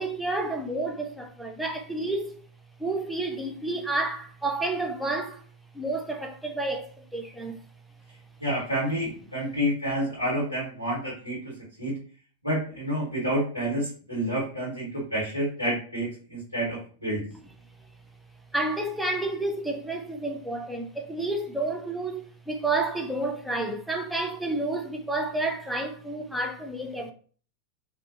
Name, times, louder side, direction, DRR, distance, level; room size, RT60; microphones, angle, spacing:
voice 1, 0.0-2.4 2.8-5.4 5.7-7.6 18.5-27.1, right 2 dB, ahead, 0.5 m, -30 dB
voice 2, 8.4-12.0 12.4-17.2, equal, 90° right, 1.3 m, -29 dB
2.5 x 2.5 x 2.6 m
figure-of-eight pair, 90°, 0 cm